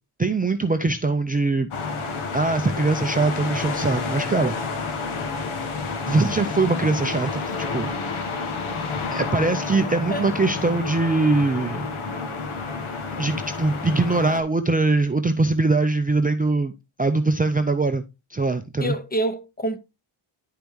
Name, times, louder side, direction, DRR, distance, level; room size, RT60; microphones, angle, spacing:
voice 1, 0.2-1.7 2.3-4.6 6.1-8.3 9.1-11.9 13.1-16.7 17.0-18.0 18.3-19.0, right 3 dB, 20° right, 0.4 m, -22 dB
sound 1, 1.7-14.4, left 4 dB, 75° left, 1.3 m, -29 dB
voice 2, 18.8-19.8, right 1 dB, 20° left, 0.7 m, -26 dB
10.5 x 5.2 x 3.1 m
wide cardioid pair, 120°, 49 cm